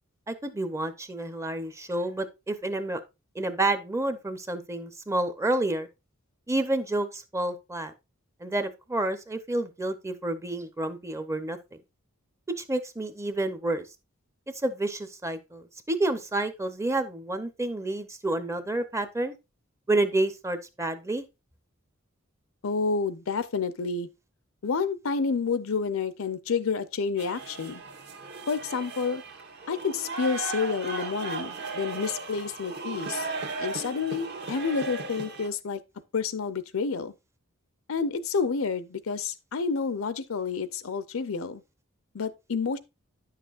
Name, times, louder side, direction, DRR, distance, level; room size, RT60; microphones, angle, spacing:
voice 1, 0.3-3.0 3.3-5.9 6.5-7.9 8.4-11.8 12.6-13.8 14.6-19.3 19.9-21.2, right 2 dB, 15° right, 0.7 m, -29 dB
voice 2, 22.6-24.1 24.6-27.8 28.5-29.2 29.7-33.3 33.6-35.8 36.1-37.1 37.9-41.6 42.1-42.8, left 5 dB, 75° left, 0.6 m, -29 dB
sound 1, 27.2-35.5, right 3 dB, 55° right, 1.3 m, -36 dB
9.9 x 6.6 x 2.5 m
head